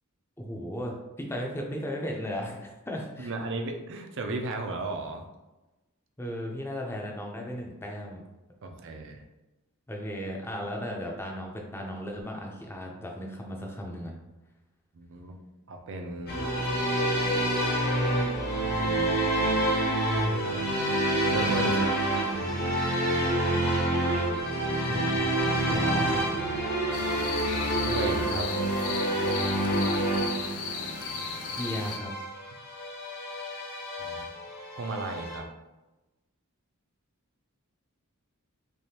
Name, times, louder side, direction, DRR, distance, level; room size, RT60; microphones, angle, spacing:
voice 1, 0.4-3.3 6.2-8.2 9.9-14.1 24.9-25.4 25.7-26.3 31.5-32.1, equal, 10° left, 0 dB, 0.5 m, -35 dB
voice 2, 3.2-5.2 8.6-9.2 14.9-15.4 15.7-16.4 18.6-19.2 21.3-22.0 27.8-28.5 34.0-34.3 34.7-35.5, right 2 dB, 60° right, 4 dB, 0.5 m, -35 dB
sound 1, 16.3-35.4, right 1 dB, 45° left, 0.8 m, -28 dB
sound 2, 26.9-32.0, left 5 dB, 90° left, 0.5 m, -36 dB
3.4 x 3.0 x 2.8 m, 1.0 s
head